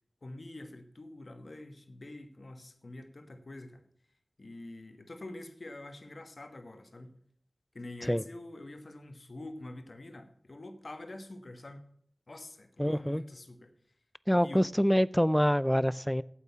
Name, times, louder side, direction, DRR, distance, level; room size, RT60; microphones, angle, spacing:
voice 1, 0.2-3.9 4.4-7.2 7.7-11.8 12.3-13.7 14.4-14.7, left 2 dB, 70° left, 1.4 m, -46 dB
voice 2, 12.8-13.2 14.3-16.2, equal, 5° left, 0.4 m, -26 dB
8.7 x 8.2 x 8.1 m
wide cardioid pair, 45°, 0 cm